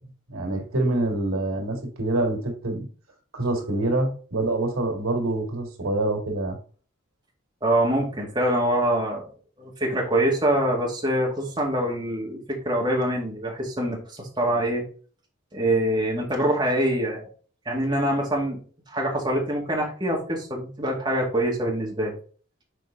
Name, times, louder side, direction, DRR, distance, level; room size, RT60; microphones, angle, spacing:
voice 1, 0.3-2.9 3.3-6.6, right 2 dB, 85° right, 3 dB, 2.1 m, -26 dB
voice 2, 7.6-9.2 9.6-14.8 15.5-17.3 17.7-18.6 18.9-22.1, right 1 dB, 20° right, -2 dB, 2.0 m, -24 dB
6.5 x 4.5 x 3.8 m, 0.41 s
head